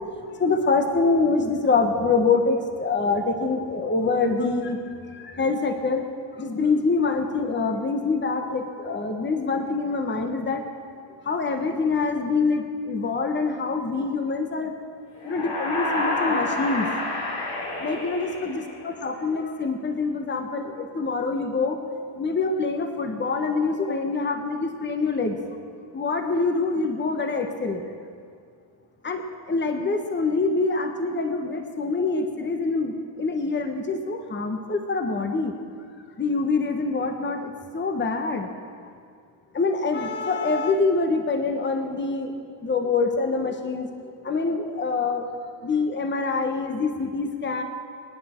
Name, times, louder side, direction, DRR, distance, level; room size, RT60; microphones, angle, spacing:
voice 1, 0.4-6.0 6.4-10.6 11.2-14.7 15.2-16.9 17.8-21.8 22.2-25.4 25.9-27.8 29.0-35.5 36.2-38.5 39.5-42.3 42.6-43.9 44.2-45.2 45.6-47.6, left 4 dB, 20° left, 5 dB, 1.1 m, -25 dB
sound 1, 15.2-19.0, left 2 dB, 60° left, 4.7 m, -29 dB
26.0 x 9.4 x 4.4 m, 2.2 s
cardioid pair, 120°, 48 cm